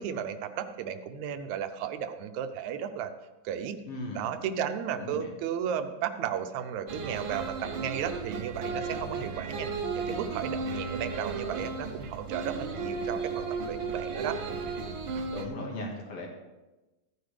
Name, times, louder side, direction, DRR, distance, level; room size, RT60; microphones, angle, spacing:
voice 1, 0.0-3.1 3.4-3.8 4.2-9.7 9.9-14.4, right 8 dB, 80° right, 9 dB, 2.0 m, -34 dB
voice 2, 3.9-4.2 4.9-5.3 15.3-16.3, left 1 dB, 60° left, 0 dB, 2.6 m, -37 dB
sound 1, 6.9-15.5, right 4 dB, 60° right, 1.4 m, -34 dB
14.0 x 9.4 x 3.3 m, 1.1 s
omnidirectional pair, 3.3 m